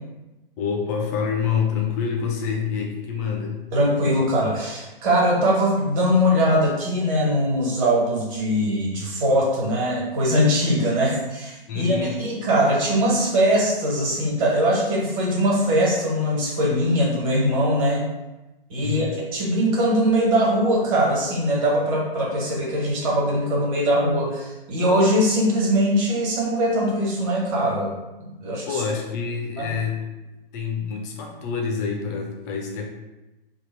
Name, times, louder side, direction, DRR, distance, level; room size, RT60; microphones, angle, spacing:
voice 1, 0.6-3.6 11.7-12.2 18.8-19.1 28.7-30.1 30.5-32.9, left 6 dB, 20° left, 1 dB, 0.4 m, -27 dB
voice 2, 3.7-18.0 18.7-27.9 28.2-28.8 29.6-29.7, equal, 35° right, -4 dB, 1.4 m, -21 dB
3.5 x 2.2 x 4.2 m, 1.0 s
figure-of-eight pair, 130°, 29 cm